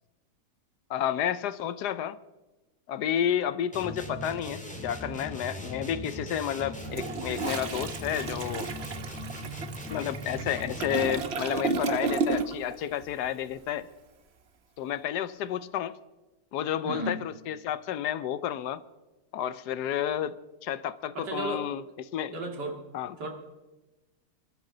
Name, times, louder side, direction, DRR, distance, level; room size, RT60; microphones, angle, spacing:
voice 1, 0.9-2.2 2.9-8.7 9.9-13.9 14.8-16.0 16.5-18.8 19.3-21.8 22.1-22.3 22.9-23.1, left 10 dB, 75° left, 1.2 m, -31 dB
sound 1, 3.7-11.4, equal, 5° left, 1.7 m, -39 dB
Toilet flush, 6.8-12.7 13.0-13.3, right 4 dB, 45° right, 0.9 m, -33 dB
voice 2, 16.8-17.3 21.1-21.6 22.3-22.8 23.2-23.3, right 2 dB, 80° right, 2.7 m, -34 dB
26.5 x 13.0 x 3.9 m
omnidirectional pair, 1.9 m